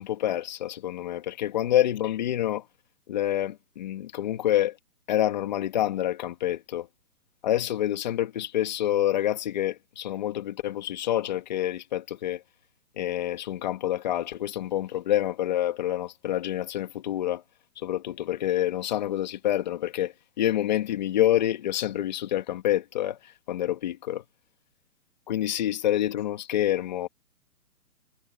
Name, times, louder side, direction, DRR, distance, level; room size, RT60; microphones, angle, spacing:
voice 1, 0.0-2.6 3.1-4.8 5.1-6.9 7.4-12.4 13.0-17.4 17.8-24.2 25.3-27.1, left 12 dB, 30° left, 2.2 m, -27 dB
hypercardioid pair, 170°, 46 cm